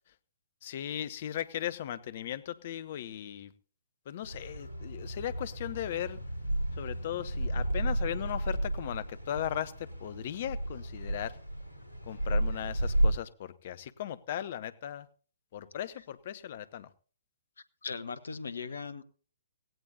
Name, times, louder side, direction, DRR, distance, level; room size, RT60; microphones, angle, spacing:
voice 1, 0.6-3.5 4.1-6.2 6.8-11.4 12.1-15.1 15.5-16.9, left 11 dB, 45° left, 0.8 m, -37 dB
sound 1, 4.2-13.1, right 1 dB, 80° left, 3.9 m, -33 dB
voice 2, 17.8-19.0, left 5 dB, 65° left, 1.0 m, -38 dB
17.0 x 17.0 x 2.8 m
figure-of-eight pair, 125°, 0 cm